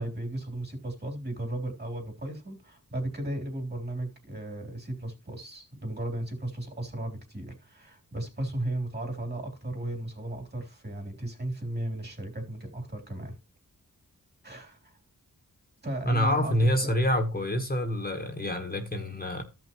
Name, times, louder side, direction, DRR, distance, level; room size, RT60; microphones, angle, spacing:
voice 1, 0.0-13.3 14.4-15.0 15.8-16.9, right 1 dB, 30° right, 3.4 m, -35 dB
voice 2, 16.0-19.4, equal, 25° left, 1.3 m, -27 dB
14.5 x 5.7 x 3.0 m
wide cardioid pair, 75°, 35 cm